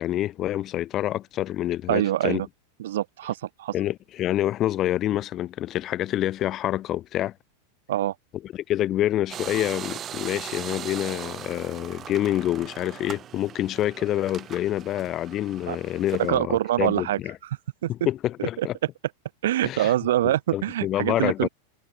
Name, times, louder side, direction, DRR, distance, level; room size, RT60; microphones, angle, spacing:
voice 1, 0.0-2.4 3.7-7.3 8.5-17.4 17.9-18.8 19.6-19.9 20.2-21.5, left 13 dB, 35° left, 2.0 m, -27 dB
voice 2, 1.9-2.5 2.8-3.7 7.9-8.1 15.7-15.8 16.2-17.2 17.8-17.9 18.4-18.7 19.4-21.5, right 13 dB, 80° right, 5.1 m, -24 dB
sound 1, 9.3-16.3, right 10 dB, 25° right, 2.1 m, -39 dB
supercardioid pair, 140°, 0 cm